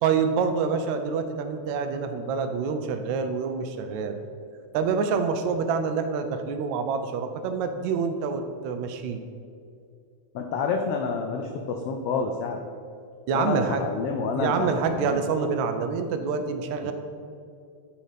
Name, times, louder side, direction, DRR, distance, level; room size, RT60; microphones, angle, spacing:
voice 1, 0.0-4.2 4.7-9.2 13.3-13.8 14.4-16.9, right 5 dB, 80° right, 7 dB, 1.9 m, -27 dB
voice 2, 10.3-12.6 13.3-15.2 16.8-16.9, left 4 dB, 85° left, 3 dB, 1.3 m, -28 dB
12.0 x 4.3 x 5.0 m, 2.4 s
omnidirectional pair, 3.3 m